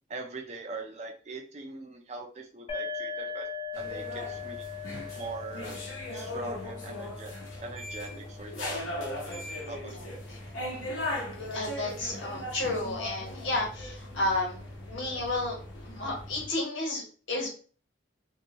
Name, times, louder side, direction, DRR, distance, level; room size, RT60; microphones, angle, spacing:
voice 1, 0.1-3.5 3.8-4.7 5.2-5.9 6.1-7.3 7.6-10.1, right 3 dB, 35° right, 3 dB, 0.5 m, -42 dB
sound 1, 2.7-10.2, left 5 dB, 30° left, 0.6 m, -41 dB
sound 2, 3.7-16.5, left 1 dB, 90° left, 0.8 m, -38 dB
voice 2, 9.9-10.4 11.5-14.6 14.9-15.6 15.8-17.5, left 2 dB, 75° left, -1 dB, 1.1 m, -32 dB
2.8 x 2.3 x 2.8 m, 0.40 s
head